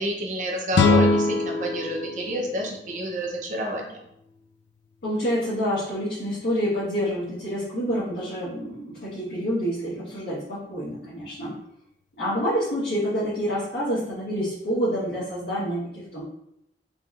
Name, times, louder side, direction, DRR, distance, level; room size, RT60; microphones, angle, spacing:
voice 1, 0.0-4.0, equal, 45° right, 0 dB, 0.6 m, -29 dB
sound 1, 0.7-3.8, left 3 dB, 90° left, 0.3 m, -23 dB
voice 2, 5.0-11.6 12.2-16.2, equal, 70° left, -11 dB, 1.4 m, -27 dB
4.0 x 2.9 x 2.4 m, 0.78 s
head